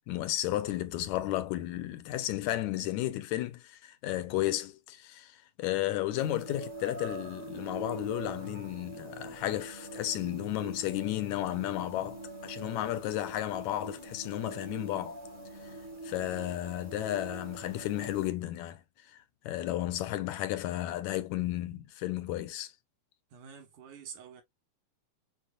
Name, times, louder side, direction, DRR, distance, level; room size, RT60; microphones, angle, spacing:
voice 1, 0.1-15.2 15.6-15.7 16.0-18.8 19.1-22.7, left 14 dB, 80° left, 1.8 m, -33 dB
sound 1, 6.2-18.3, right 2 dB, 45° right, 0.4 m, -44 dB
voice 2, 23.3-24.4, right 7 dB, 90° right, 2.7 m, -47 dB
6.8 x 2.4 x 2.3 m
omnidirectional pair, 3.4 m